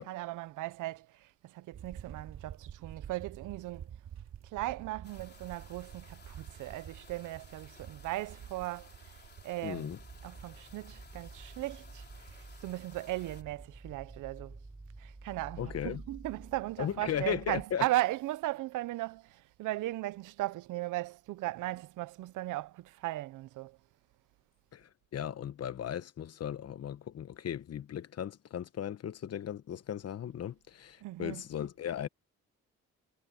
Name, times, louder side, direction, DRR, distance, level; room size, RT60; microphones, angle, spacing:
voice 1, 0.0-3.9 4.5-8.9 9.4-9.9 10.2-14.6 15.0-23.8 31.0-31.4, right 16 dB, 85° right, 0.7 m, -37 dB
sound 1, 1.7-13.7, right 9 dB, 65° right, 3.4 m, -50 dB
sound 2, 5.0-13.4, left 5 dB, 35° left, 3.6 m, -58 dB
voice 2, 9.6-10.0 15.6-16.0 16.8-17.8 24.7-32.1, left 9 dB, 55° left, 1.2 m, -37 dB
sound 3, 10.0-17.7, right 3 dB, 20° right, 3.9 m, -50 dB
cardioid pair, 90°, 30 cm